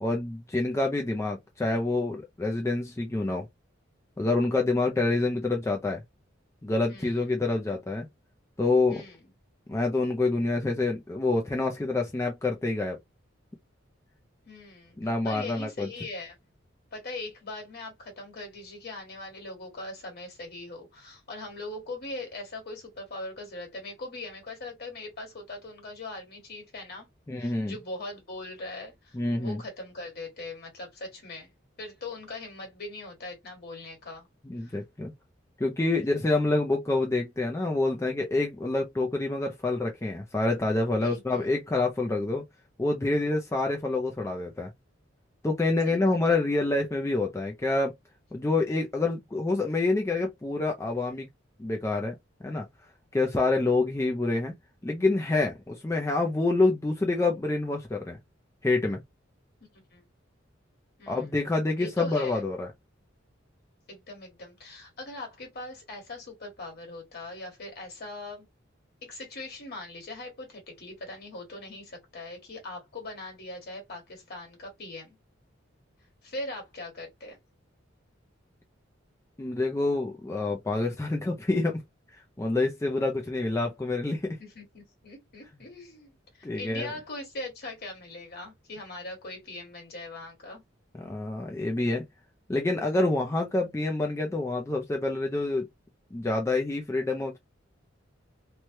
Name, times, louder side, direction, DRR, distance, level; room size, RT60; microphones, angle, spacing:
voice 1, 0.0-3.5 4.2-6.0 6.6-8.1 8.6-9.0 9.7-13.0 15.0-15.9 27.3-27.7 29.1-29.6 34.5-35.1 35.6-42.4 42.8-44.7 45.4-47.9 48.3-51.3 51.6-52.2 52.4-52.7 53.1-54.5 54.8-58.2 58.6-59.0 61.1-62.7 79.4-81.8 82.4-84.4 86.4-86.9 91.0-92.1 92.5-95.7 96.1-97.4, left 2 dB, 15° left, 0.4 m, -27 dB
voice 2, 6.9-7.2 8.9-9.3 14.4-15.0 15.2-16.3 16.9-27.1 27.4-31.5 31.8-34.3 34.6-34.8 36.2-36.3 41.0-41.4 45.8-46.2 59.6-60.0 61.0-61.4 61.8-62.4 63.9-68.5 69.0-75.2 76.2-77.4 84.4-90.6, left 2 dB, 55° left, 1.5 m, -41 dB
3.1 x 2.1 x 2.8 m
head